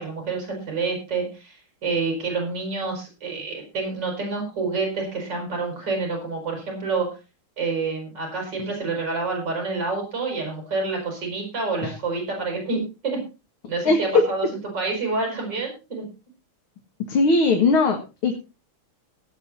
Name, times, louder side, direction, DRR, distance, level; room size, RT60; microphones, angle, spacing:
voice 1, 0.0-7.1 7.6-13.2 13.7-16.1, right 3 dB, 50° right, 2 dB, 6.2 m, -28 dB
voice 2, 17.1-18.4, left 3 dB, 70° left, 3 dB, 2.6 m, -19 dB
18.0 x 8.4 x 4.2 m, 0.30 s
omnidirectional pair, 2.4 m